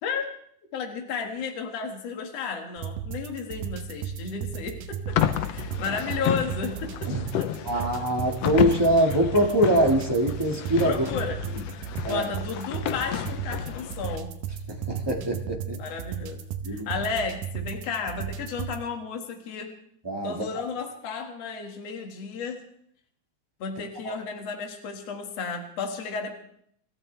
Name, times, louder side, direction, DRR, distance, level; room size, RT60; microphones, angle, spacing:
voice 1, 0.7-5.2 5.5-7.8 10.8-11.4 12.1-14.4 15.8-19.7 20.2-22.6 23.6-26.3, left 5 dB, 55° left, 3 dB, 2.9 m, -33 dB
sound 1, 2.8-18.8, right 8 dB, 85° right, 2.6 m, -35 dB
sound 2, 5.1-14.2, left 11 dB, 75° left, 1.5 m, -31 dB
voice 2, 7.6-11.1 12.0-12.3 14.7-15.8 16.6-16.9 20.0-20.3 24.0-24.1, equal, 15° right, -1 dB, 1.0 m, -23 dB
27.0 x 14.0 x 3.4 m, 0.67 s
omnidirectional pair, 3.7 m